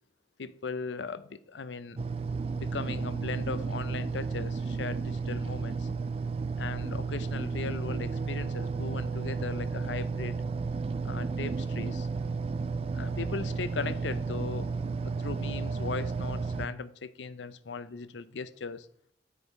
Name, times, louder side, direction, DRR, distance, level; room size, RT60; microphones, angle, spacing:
voice 1, 0.4-2.0 2.5-5.9 6.6-10.4 11.0-12.1 12.9-14.7 15.0-18.9, left 4 dB, 85° left, 0.6 m, -38 dB
sound 1, 2.0-16.7, right 4 dB, 35° right, 0.3 m, -33 dB
9.8 x 4.9 x 5.4 m
head